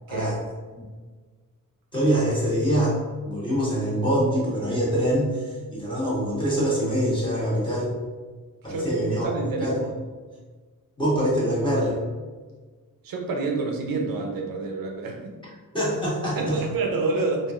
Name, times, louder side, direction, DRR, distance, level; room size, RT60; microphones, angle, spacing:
voice 1, 0.1-0.4 0.7-0.9 1.9-3.0 3.2-7.9 8.6-9.3 9.6-9.8 11.0-12.0 15.7-16.6, equal, 15° left, -8 dB, 1.1 m, -24 dB
voice 2, 8.7-9.7 13.0-15.4 16.4-17.5, right 3 dB, 80° right, 1 dB, 0.6 m, -28 dB
3.0 x 2.5 x 2.4 m, 1.4 s
wide cardioid pair, 125°, 34 cm